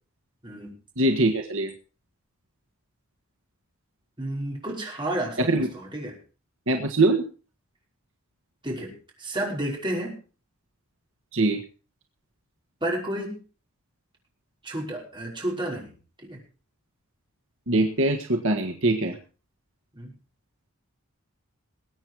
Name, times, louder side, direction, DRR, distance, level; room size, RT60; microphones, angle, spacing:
voice 1, 1.0-1.7 5.4-5.7 6.7-7.2 11.3-11.6 17.7-19.2, right 2 dB, 60° right, 3 dB, 1.6 m, -22 dB
voice 2, 4.2-6.2 8.6-10.2 12.8-13.4 14.6-15.9 16.2-16.4 19.9-20.1, right 1 dB, 20° right, -2 dB, 5.5 m, -31 dB
21.5 x 9.0 x 4.8 m, 0.37 s
head